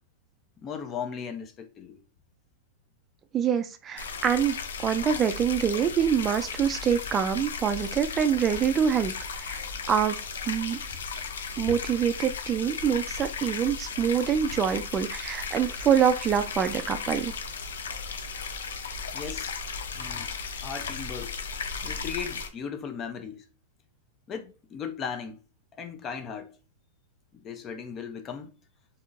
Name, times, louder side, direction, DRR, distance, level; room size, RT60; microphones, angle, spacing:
voice 1, 0.6-2.0 19.1-19.5 19.9-20.3 20.6-21.4 21.8-23.5 24.3-25.4 25.7-26.6 27.3-28.5, left 7 dB, 30° left, 0.5 m, -37 dB
voice 2, 3.3-4.5 4.8-9.1 9.4-9.6 9.9-10.2 10.5-10.8 11.6-17.3, right 8 dB, 25° right, 0.3 m, -25 dB
sound 1, 4.0-22.5, left 5 dB, 85° left, 0.5 m, -35 dB
3.6 x 2.7 x 2.5 m
hypercardioid pair, 125°, 0 cm